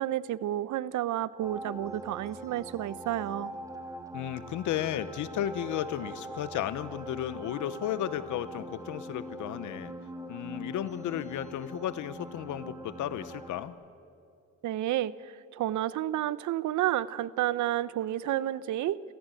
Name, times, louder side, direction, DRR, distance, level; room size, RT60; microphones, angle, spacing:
voice 1, 0.0-3.5 14.6-19.0, right 13 dB, 75° right, 18 dB, 0.8 m, -30 dB
sound 1, 1.4-13.7, right 1 dB, 10° right, 2.5 m, -43 dB
voice 2, 4.1-9.9 10.3-13.7, left 11 dB, 80° left, 15 dB, 0.9 m, -34 dB
29.0 x 14.5 x 9.1 m, 2.5 s
cardioid pair, 90°, 30 cm